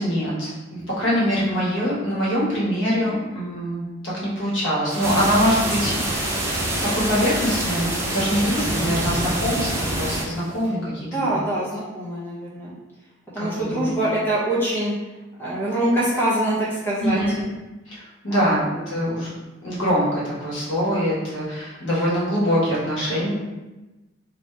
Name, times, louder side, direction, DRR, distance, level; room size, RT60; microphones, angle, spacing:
voice 1, 0.0-11.4 13.4-13.9 17.0-17.5 17.9-19.3 19.6-23.3, equal, 80° left, -7 dB, 1.4 m, -24 dB
sound 1, 4.9-10.7, right 1 dB, 90° right, 0.8 m, -33 dB
sound 2, 5.0-10.2, right 1 dB, 15° right, 0.4 m, -26 dB
voice 2, 8.7-9.3 11.1-12.8 13.3-14.9 15.4-17.2 18.3-18.6, right 1 dB, 10° left, -8 dB, 0.9 m, -24 dB
3.1 x 2.9 x 3.2 m, 1.1 s
head